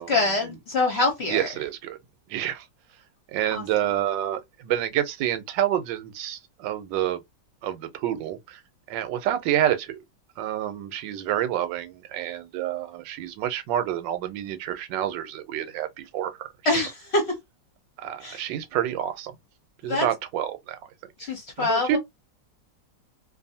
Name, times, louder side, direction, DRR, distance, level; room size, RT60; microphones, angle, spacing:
voice 1, 0.0-1.5 3.5-3.6 16.6-17.2 18.2-18.4 19.9-20.1 21.2-22.0, left 2 dB, 50° left, 0.9 m, -25 dB
voice 2, 1.3-2.0 2.3-2.6 3.3-7.2 7.6-8.6 8.9-10.0 10.4-16.5 18.0-19.3 19.8-20.8 21.6-22.0, right 11 dB, 90° right, 1.3 m, -28 dB
2.6 x 2.5 x 2.6 m
omnidirectional pair, 1.9 m